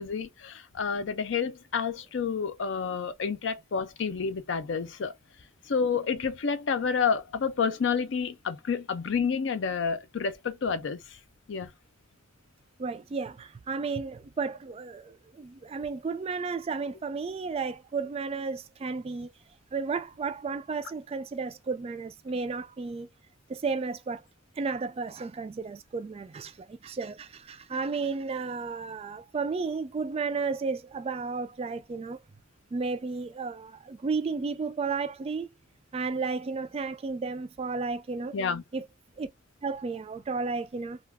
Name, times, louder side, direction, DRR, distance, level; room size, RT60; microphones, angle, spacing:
voice 1, 0.0-5.1 5.7-11.2 11.5-11.7 38.3-38.6, left 6 dB, 65° left, 0.5 m, -29 dB
voice 2, 12.8-19.3 19.7-23.1 23.5-24.2 24.6-32.2 32.7-35.5 35.9-38.3 38.7-38.9 39.2-39.3 39.6-41.0, right 4 dB, 30° right, 0.3 m, -33 dB
2.3 x 2.2 x 3.4 m
head